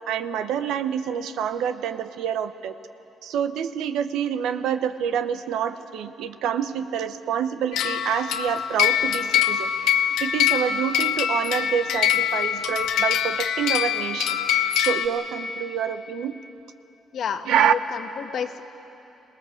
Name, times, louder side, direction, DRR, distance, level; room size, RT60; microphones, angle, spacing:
voice 1, 0.1-2.7 3.2-9.7 10.2-14.4 14.8-16.3 17.5-17.7, right 8 dB, 85° right, 11 dB, 0.8 m, -27 dB
sound 1, 7.7-15.1, left 10 dB, 85° left, 0.9 m, -24 dB
voice 2, 17.1-18.6, left 7 dB, 65° left, 7 dB, 1.2 m, -30 dB
26.0 x 18.5 x 7.2 m, 2.9 s
cardioid pair, 90°, 0 cm